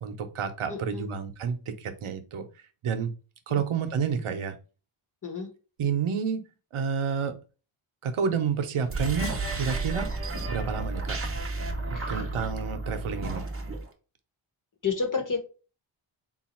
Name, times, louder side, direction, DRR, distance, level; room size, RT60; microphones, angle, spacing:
voice 1, 0.0-2.5 2.8-3.1 3.5-4.6 5.8-6.4 6.7-7.4 8.0-10.1 10.5-11.2 11.9-13.5, right 6 dB, 85° right, 8 dB, 0.8 m, -30 dB
voice 2, 0.7-1.1 3.5-3.6 5.2-5.5 11.9-12.2 14.8-15.4, left 5 dB, 40° left, 3 dB, 1.1 m, -30 dB
sound 1, 8.8-13.9, right 2 dB, 30° right, 0.7 m, -32 dB
3.9 x 2.3 x 4.2 m, 0.34 s
wide cardioid pair, 165°, 49 cm